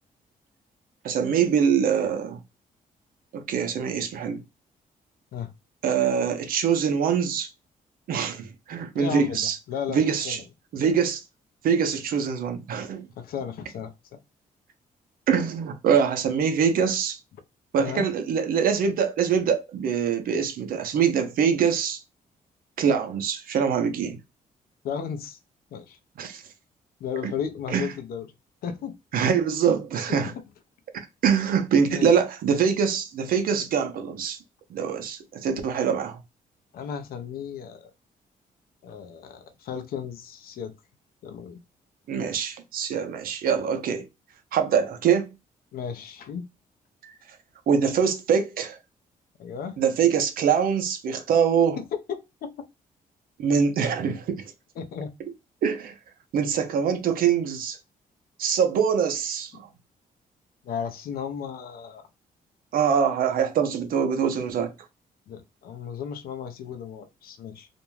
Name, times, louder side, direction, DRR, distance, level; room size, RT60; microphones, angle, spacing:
voice 1, 1.0-2.4 3.3-4.4 5.8-7.5 8.1-9.6 9.9-10.4 10.7-11.2 11.6-13.1 15.3-17.2 17.7-22.0 22.8-24.2 26.2-26.4 27.7-27.9 29.1-30.3 31.2-34.4 34.7-36.2 42.1-44.1 44.5-45.3 47.0-47.1 47.7-48.8 49.8-51.8 53.4-54.4 55.6-55.9 56.3-57.8 58.4-59.5 62.7-64.7, right 7 dB, 75° right, 0.6 m, -24 dB
voice 2, 8.9-9.4 9.7-10.4 13.2-14.2 17.8-18.1 24.8-25.4 25.7-26.0 27.0-28.3 28.6-28.9 30.1-30.2 31.9-32.1 36.7-37.9 38.8-40.7 41.2-41.6 45.7-46.4 49.4-49.8 51.8-52.5 54.8-55.1 60.6-62.0 65.3-67.7, left 7 dB, 80° left, 0.6 m, -34 dB
2.5 x 2.2 x 3.0 m
cardioid pair, 110°, 15 cm